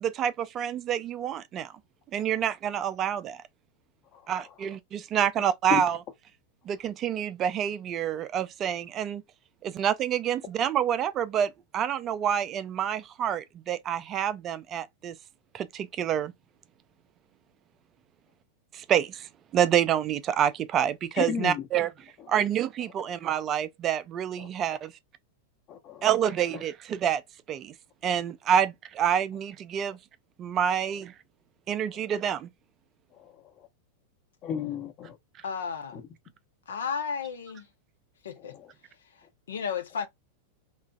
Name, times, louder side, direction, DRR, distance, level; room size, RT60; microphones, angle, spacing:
voice 1, 0.0-1.7 2.1-3.4 4.3-6.0 6.7-9.2 9.6-15.2 15.5-16.3 18.7-19.3 19.5-21.9 22.3-24.9 26.0-27.2 27.5-27.7 28.0-30.0 30.4-31.1 31.7-32.5, right 9 dB, 35° right, 0.3 m, -27 dB
voice 2, 4.1-4.8 5.4-5.5 5.7-5.8 21.2-21.7 24.4-24.5 25.7-26.1 26.5-26.6 31.9-32.0 33.1-33.7 34.4-35.2 35.9-36.1 38.4-38.7, left 8 dB, 40° left, 1.0 m, -35 dB
voice 3, 35.4-36.0 36.7-37.7 38.2-38.5 39.5-40.1, left 6 dB, 70° left, 0.6 m, -33 dB
3.1 x 2.4 x 2.3 m
figure-of-eight pair, 95°, 0 cm